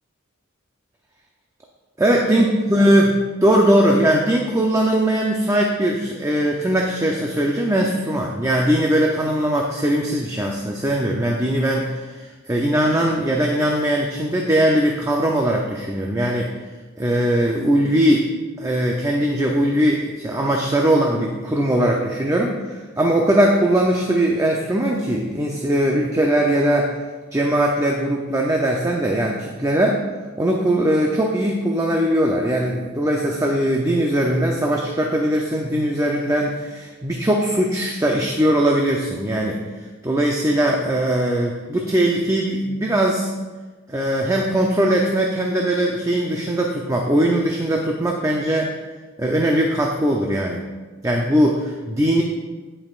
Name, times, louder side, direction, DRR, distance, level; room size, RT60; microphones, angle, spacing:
voice 1, 2.0-16.5 17.0-18.3 18.6-26.9 27.3-30.0 30.4-39.6 40.0-43.3 43.9-48.7 49.2-50.6 51.0-52.2, right 1 dB, 15° right, 0 dB, 0.6 m, -20 dB
16.5 x 5.6 x 2.5 m, 1.3 s
head